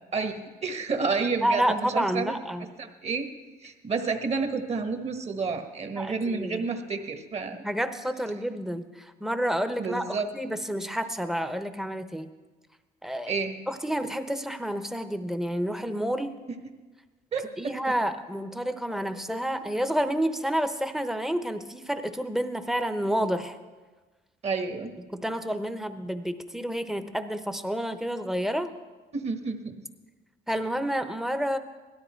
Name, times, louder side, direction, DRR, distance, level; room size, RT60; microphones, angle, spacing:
voice 1, 0.1-2.4 2.8-3.3 3.6-7.6 9.8-10.3 13.3-13.5 17.3-17.7 24.4-24.9 29.1-29.7, right 4 dB, 40° right, 6 dB, 1.4 m, -30 dB
voice 2, 1.4-2.7 5.9-6.6 7.6-12.3 13.0-13.3 13.7-16.4 17.6-23.6 25.1-28.7 30.5-31.6, equal, ahead, 9 dB, 0.8 m, -29 dB
17.0 x 12.5 x 4.5 m, 1.3 s
cardioid pair, 110°, 17 cm